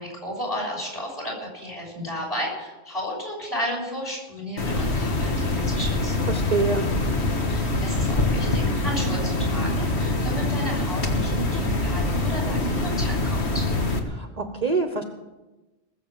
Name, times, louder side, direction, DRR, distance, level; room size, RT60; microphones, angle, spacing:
voice 1, 0.0-6.3 7.5-13.7, equal, 30° left, -2 dB, 6.4 m, -33 dB
sound 1, 4.6-14.0, left 2 dB, 65° left, 1.8 m, -24 dB
voice 2, 6.3-6.9 14.1-15.0, right 4 dB, 35° right, 6 dB, 1.0 m, -25 dB
19.5 x 7.5 x 7.3 m, 1.1 s
omnidirectional pair, 1.2 m